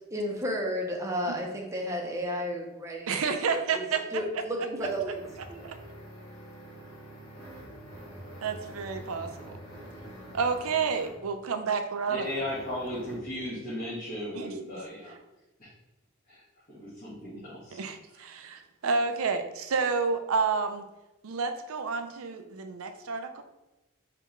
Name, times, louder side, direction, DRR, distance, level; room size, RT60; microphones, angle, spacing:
voice 1, 0.1-3.8 4.1-5.2 5.5-5.6, equal, 15° right, 0 dB, 0.6 m, -32 dB
voice 2, 3.1-4.2 5.6-5.8 8.4-9.5 10.3-12.3 14.3-14.5 17.7-20.8 21.2-23.4, right 5 dB, 80° right, 8 dB, 0.5 m, -30 dB
sound 1, 4.1-11.3 12.2-13.3, right 1 dB, 75° left, 1.5 m, -46 dB
voice 3, 12.1-15.1 15.6-15.7 16.3-16.4 16.7-17.8 18.1-18.2, left 1 dB, 40° left, -10 dB, 1.4 m, -36 dB
4.8 x 3.3 x 3.0 m, 1.0 s
head